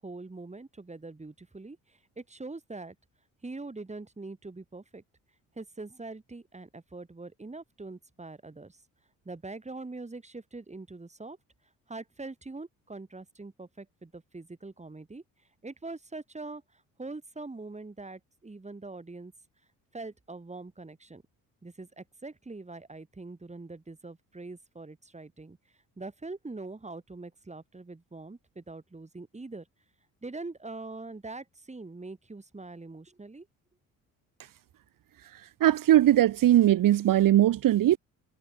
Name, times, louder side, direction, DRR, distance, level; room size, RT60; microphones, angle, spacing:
voice 1, 0.0-3.0 3.4-5.0 5.6-8.8 9.2-11.4 11.9-15.2 15.6-19.3 19.9-21.2 21.6-25.6 26.0-29.7 30.2-33.5, right 3 dB, 20° right, 7.7 m, -43 dB
voice 2, 35.6-38.0, right 12 dB, 65° right, 2.1 m, -20 dB
cardioid pair, 80°, 35 cm